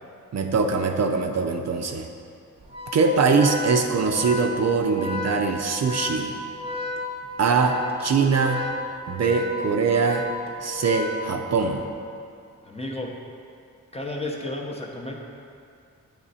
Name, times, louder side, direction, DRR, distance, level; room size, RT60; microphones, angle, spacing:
voice 1, 0.3-2.1 2.9-6.3 7.4-8.6 9.1-10.3 10.6-11.8, right 4 dB, 55° right, 3 dB, 0.4 m, -22 dB
Organ, 2.6-11.8, left 2 dB, 15° right, 0.7 m, -33 dB
voice 2, 12.7-13.1 13.9-15.1, left 1 dB, 20° left, 0 dB, 0.6 m, -32 dB
8.5 x 3.2 x 4.0 m, 2.5 s
wide cardioid pair, 110°, 33 cm